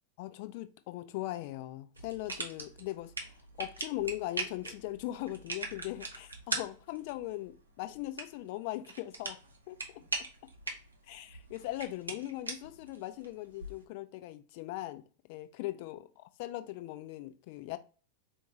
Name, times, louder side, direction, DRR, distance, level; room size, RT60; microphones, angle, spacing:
voice 1, 0.2-9.4 9.7-9.8 11.1-15.0 15.3-17.8, left 16 dB, 45° left, 0.4 m, -40 dB
sound 1, 1.9-13.9, right 3 dB, 80° right, 0.7 m, -42 dB
4.4 x 2.4 x 3.0 m
figure-of-eight pair, 90°, 0 cm